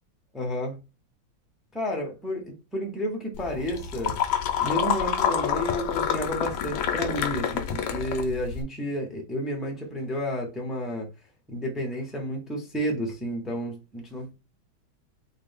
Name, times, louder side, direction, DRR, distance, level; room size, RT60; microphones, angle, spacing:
voice 1, 0.3-0.8 1.7-4.2 4.6-11.1 11.5-14.3, equal, ahead, 0.5 m, -31 dB
sound 1, 3.3-8.6, left 8 dB, 70° left, 1.1 m, -28 dB
3.8 x 2.8 x 3.4 m
omnidirectional pair, 2.2 m